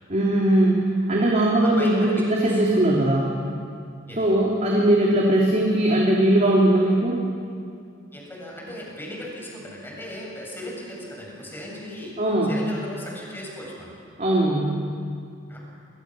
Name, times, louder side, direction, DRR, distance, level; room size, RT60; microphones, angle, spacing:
voice 1, 0.1-3.4 4.2-7.2 12.2-12.6 14.2-14.8, right 1 dB, 40° right, -3 dB, 3.2 m, -20 dB
voice 2, 1.6-2.1 2.4-2.8 4.1-4.3 8.1-12.1 12.5-13.9 15.5-15.6, left 1 dB, 10° left, -3 dB, 7.8 m, -37 dB
29.0 x 25.0 x 6.4 m, 2.3 s
head